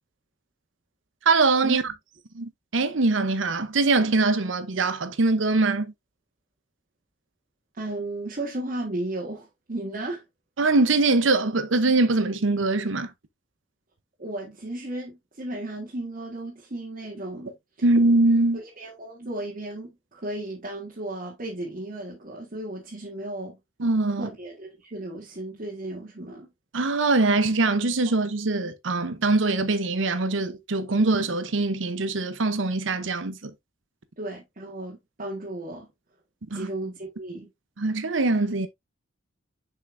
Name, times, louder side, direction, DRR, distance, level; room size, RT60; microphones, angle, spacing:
voice 1, 1.3-1.8 2.3-5.9 10.6-13.1 17.8-18.6 23.8-24.3 26.7-33.5 36.5-36.7 37.8-38.7, right 3 dB, 75° right, 0.8 m, -22 dB
voice 2, 7.7-10.2 14.2-17.5 18.5-23.6 24.1-26.5 34.2-35.9 36.5-37.5, right 1 dB, 45° right, 1.7 m, -34 dB
7.0 x 5.5 x 2.6 m
head